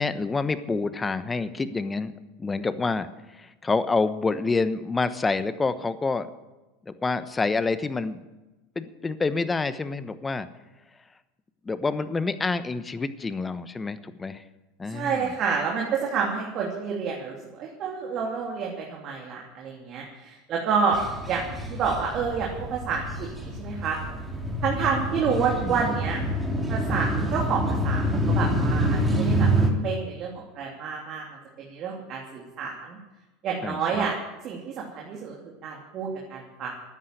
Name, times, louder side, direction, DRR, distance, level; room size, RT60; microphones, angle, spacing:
voice 1, 0.0-2.1 2.4-6.3 6.9-8.2 8.7-10.5 11.6-14.4 14.8-15.3 25.3-25.9 33.6-34.1, left 4 dB, 20° left, 13 dB, 1.1 m, -28 dB
voice 2, 14.9-21.0 21.3-24.0 24.6-26.2 26.7-29.5 29.8-31.3 31.6-33.0 33.4-34.1 34.4-36.7, right 6 dB, 45° right, -1 dB, 2.9 m, -29 dB
sound 1, 20.9-29.7, right 1 dB, 10° right, 3.4 m, -27 dB
13.5 x 9.9 x 9.3 m, 1.1 s
hypercardioid pair, 90°, 0 cm